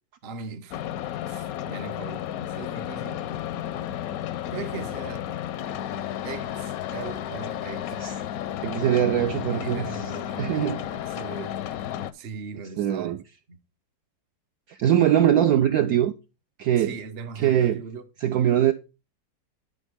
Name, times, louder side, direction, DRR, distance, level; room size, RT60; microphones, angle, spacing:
voice 1, 0.2-0.9 1.3-3.3 4.5-5.3 6.2-8.4 9.5-10.5 10.9-11.6 12.1-13.2 13.5-13.6 16.7-18.0, right 5 dB, 50° right, 0.8 m, -39 dB
sound 1, 0.7-12.1, left 11 dB, 70° left, 0.9 m, -32 dB
voice 2, 8.6-9.9 10.4-10.8 12.8-13.2 14.7-16.1 16.6-16.9 17.4-17.8 18.2-18.7, right 10 dB, 70° right, 0.9 m, -22 dB
11.0 x 5.1 x 3.5 m
omnidirectional pair, 1.9 m